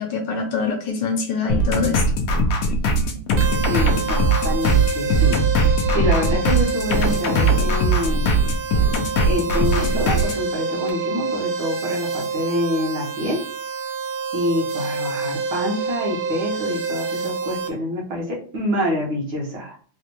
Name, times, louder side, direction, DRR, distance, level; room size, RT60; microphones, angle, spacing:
voice 1, 0.0-2.0, left 4 dB, 70° left, 3 dB, 1.2 m, -24 dB
sound 1, 1.5-10.4, right 1 dB, 90° left, 0.7 m, -20 dB
sound 2, 3.4-17.7, right 4 dB, 90° right, 1.5 m, -28 dB
voice 2, 3.7-8.3 9.2-13.4 14.3-19.8, equal, 70° right, -3 dB, 1.8 m, -26 dB
4.0 x 2.2 x 2.9 m, 0.43 s
omnidirectional pair, 2.2 m